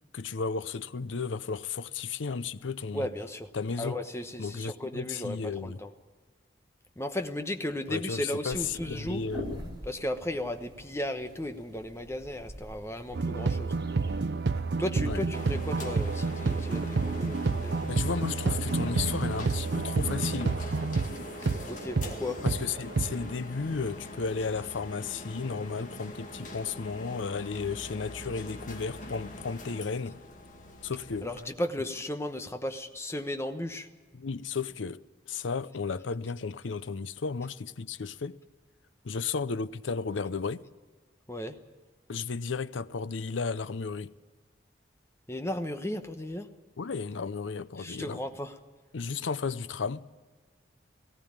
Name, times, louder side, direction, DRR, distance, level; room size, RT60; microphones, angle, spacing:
voice 1, 0.1-3.1 3.5-4.0 4.4-5.8 7.9-9.6 15.0-15.2 17.9-20.6 22.4-30.2 30.8-31.3 34.1-35.0 35.3-38.4 39.0-40.6 42.1-44.1 46.8-48.2 48.9-50.1, left 5 dB, 80° left, 0.6 m, -34 dB
voice 2, 2.9-3.5 3.8-5.9 7.0-9.2 9.8-13.8 14.8-17.7 21.6-22.4 31.2-33.9 41.3-41.6 45.3-46.5 47.8-48.5, left 1 dB, 15° left, 1.0 m, -35 dB
sound 1, 8.5-18.0, equal, 25° right, 3.7 m, -46 dB
sound 2, 13.1-23.3, right 3 dB, 60° right, 0.5 m, -29 dB
sound 3, 15.3-31.4, left 1 dB, 40° left, 2.0 m, -43 dB
18.5 x 16.0 x 8.8 m
head